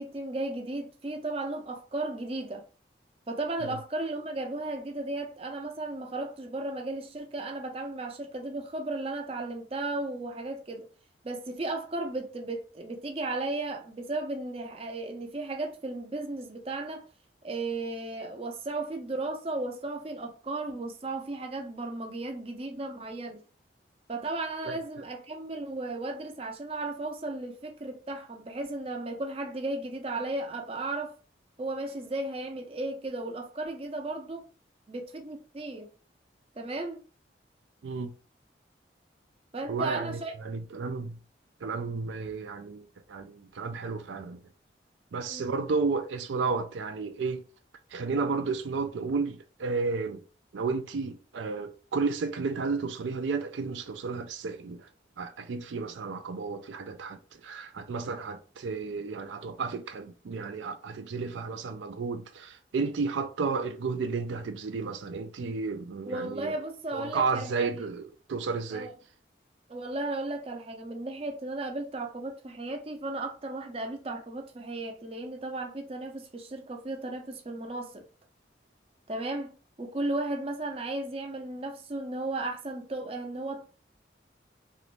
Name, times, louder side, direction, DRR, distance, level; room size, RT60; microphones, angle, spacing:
voice 1, 0.0-2.6 3.3-10.9 11.2-17.0 17.4-23.4 24.1-31.1 31.6-34.4 34.9-35.9 36.6-37.0 39.5-40.3 45.3-45.5 66.0-67.8 68.7-68.9 69.7-78.0 79.1-79.5 79.8-83.7, right 2 dB, 30° right, 0.5 m, -35 dB
voice 2, 39.7-41.2 41.6-44.4 45.1-47.4 47.9-50.2 50.5-54.9 55.2-66.5 66.9-68.9, right 4 dB, 90° right, 0.4 m, -32 dB
3.0 x 2.5 x 3.2 m
head